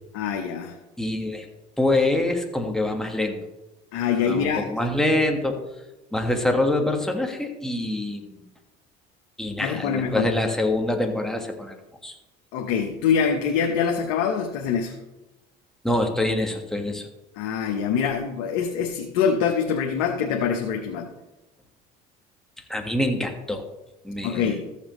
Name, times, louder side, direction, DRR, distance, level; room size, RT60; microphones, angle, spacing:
voice 1, 0.1-0.7 3.9-4.7 9.6-10.3 12.5-14.9 17.4-21.1 24.2-24.7, left 7 dB, 75° left, 2 dB, 1.0 m, -24 dB
voice 2, 1.0-1.5 1.8-3.4 4.1-5.6 6.1-8.4 9.4-11.7 12.0-12.2 15.8-17.1 22.7-23.6 24.0-24.6, left 1 dB, ahead, 3 dB, 1.6 m, -25 dB
14.0 x 7.1 x 3.1 m, 1.0 s
supercardioid pair, 80°, 20 cm